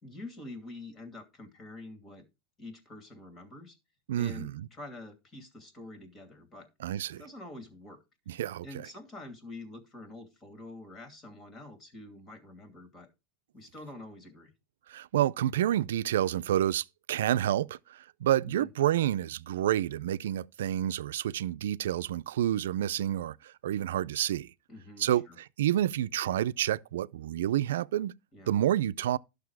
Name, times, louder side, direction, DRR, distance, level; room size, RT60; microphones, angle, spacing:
voice 1, 0.0-2.2 2.6-3.8 4.2-6.7 7.1-8.0 8.6-13.1 13.5-14.5 18.6-18.7 24.7-25.4 28.3-28.5, left 2 dB, 25° left, 2.5 m, -46 dB
voice 2, 4.1-4.5 6.8-7.2 8.3-8.9 14.9-24.5 25.0-28.1 28.5-29.2, right 12 dB, 85° right, 0.4 m, -29 dB
11.5 x 6.6 x 4.7 m
supercardioid pair, 145°, 0 cm